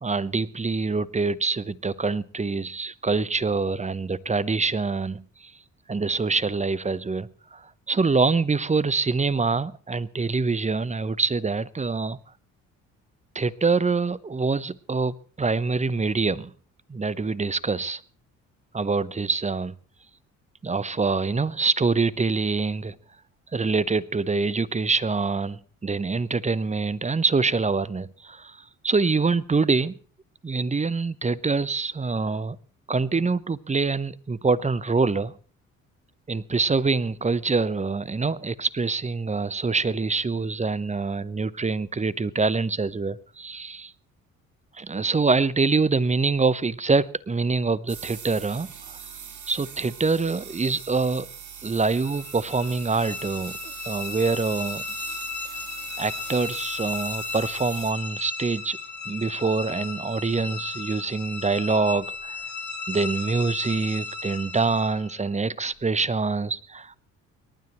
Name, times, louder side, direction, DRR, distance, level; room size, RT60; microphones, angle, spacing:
voice 1, 0.0-5.5 5.9-12.2 13.3-16.5 16.9-18.0 18.7-19.7 20.6-23.0 23.5-29.9 30.4-32.6 32.9-35.3 36.3-43.9 44.7-49.0 49.5-51.3 51.6-53.5 53.8-54.8 56.0-58.8 59.1-62.4 62.9-67.0, right 4 dB, 15° right, 0.9 m, -25 dB
sound 1, 47.9-57.9, right 8 dB, 45° right, 2.8 m, -41 dB
sound 2, 51.8-65.2, left 4 dB, 25° left, 3.9 m, -35 dB
29.5 x 12.0 x 3.1 m
figure-of-eight pair, 45°, 40 cm